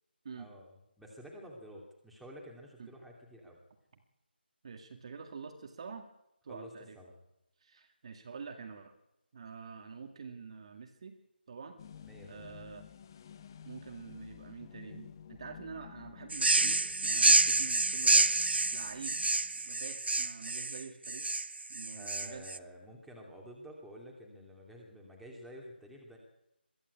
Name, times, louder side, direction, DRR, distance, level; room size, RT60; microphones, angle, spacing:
voice 1, 0.4-3.6 6.5-7.1 12.0-12.6 21.9-26.2, equal, ahead, -2 dB, 2.6 m, -50 dB
voice 2, 4.6-6.1 6.4-7.0 7.6-8.9 9.3-11.2 11.5-11.8 12.3-12.9 13.6-18.3 18.7-19.2 19.6-21.4 21.7-22.5, right 5 dB, 35° right, 5 dB, 2.1 m, -46 dB
sound 1, 11.8-19.7, left 8 dB, 20° left, 0.9 m, -52 dB
sound 2, 16.3-22.6, right 3 dB, 70° right, 1.0 m, -28 dB
22.5 x 15.0 x 8.5 m, 0.85 s
figure-of-eight pair, 165°, 6 cm